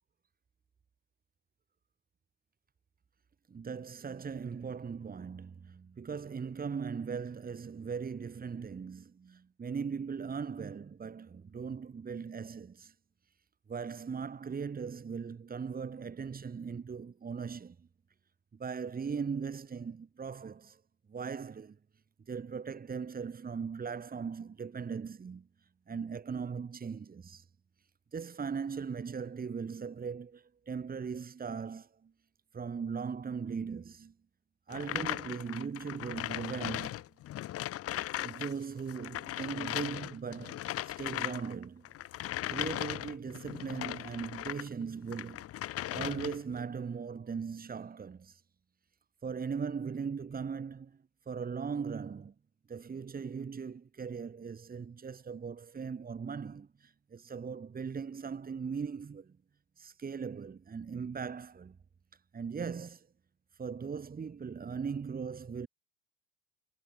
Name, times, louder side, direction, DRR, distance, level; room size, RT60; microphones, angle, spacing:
voice 1, 3.5-12.9 13.7-17.9 18.5-20.8 21.1-21.8 22.3-25.5 25.9-27.4 28.1-32.1 32.5-34.1 34.7-36.9 38.2-41.9 42.5-45.4 45.9-48.4 49.2-52.3 52.7-59.4 59.8-61.8 62.3-63.1 63.6-65.7, right 6 dB, 25° right, 3.9 m, -39 dB
sound 1, 34.7-38.5 38.8-44.7 45.1-46.5, left 13 dB, 45° left, 0.9 m, -38 dB
supercardioid pair, 100°, 33 cm